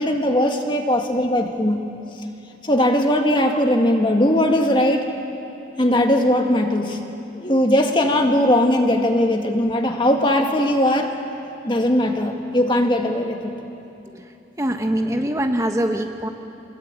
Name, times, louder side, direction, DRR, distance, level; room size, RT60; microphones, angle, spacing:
voice 1, 0.0-1.8 2.6-5.1 5.8-7.0 7.3-11.2 11.6-13.5, left 1 dB, 25° left, 3 dB, 1.9 m, -19 dB
voice 2, 14.1-16.3, right 1 dB, 15° right, 4 dB, 1.1 m, -24 dB
27.0 x 21.5 x 8.9 m, 2.8 s
head